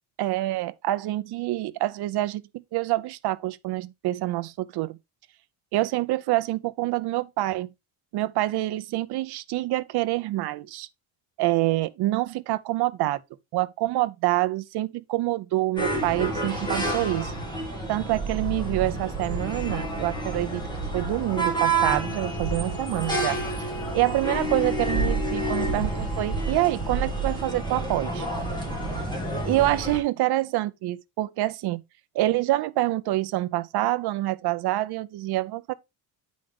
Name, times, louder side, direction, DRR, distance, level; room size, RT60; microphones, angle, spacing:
voice 1, 0.2-5.0 5.7-7.7 8.1-10.9 11.4-13.2 13.5-17.3 17.9-20.7 20.9-23.4 23.9-28.3 29.4-31.8 32.1-35.7, right 16 dB, 55° right, 0.7 m, -26 dB
sound 1, 15.8-30.0, right 2 dB, 10° left, 2.2 m, -29 dB
9.0 x 5.2 x 3.5 m
cardioid pair, 175°, 48 cm